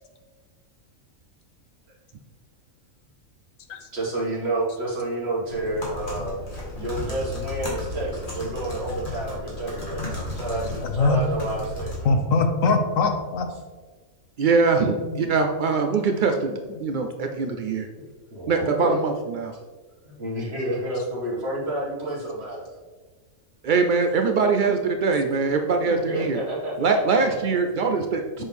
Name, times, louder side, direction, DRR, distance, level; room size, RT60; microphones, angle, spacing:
voice 1, 3.9-6.4 6.7-12.2 17.6-17.7 18.3-19.0 20.0-22.7 25.9-27.5 28.4-28.5, right 1 dB, 50° right, -5 dB, 2.3 m, -30 dB
sound 1, 5.5-12.0, left 1 dB, 35° left, 2.1 m, -34 dB
voice 2, 10.8-11.2 12.0-13.5 14.8-15.3 15.7-16.8 27.8-28.0, left 3 dB, 75° left, 6 dB, 1.2 m, -24 dB
voice 3, 14.4-16.5 16.8-17.9 18.5-19.5 23.6-26.4 26.8-28.4, right 4 dB, 70° right, 4 dB, 0.4 m, -22 dB
7.5 x 6.2 x 3.5 m, 1.4 s
omnidirectional pair, 1.4 m